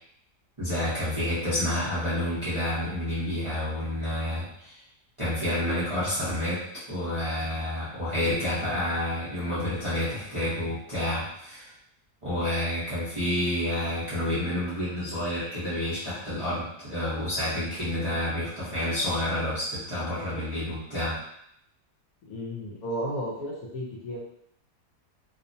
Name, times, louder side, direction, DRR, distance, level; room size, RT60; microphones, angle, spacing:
voice 1, 0.6-4.8 5.2-11.7 12.2-21.2, left 1 dB, 25° right, -11 dB, 0.7 m, -29 dB
voice 2, 22.3-24.2, equal, 70° left, -4 dB, 1.1 m, -33 dB
2.8 x 2.1 x 2.6 m, 0.72 s
omnidirectional pair, 1.8 m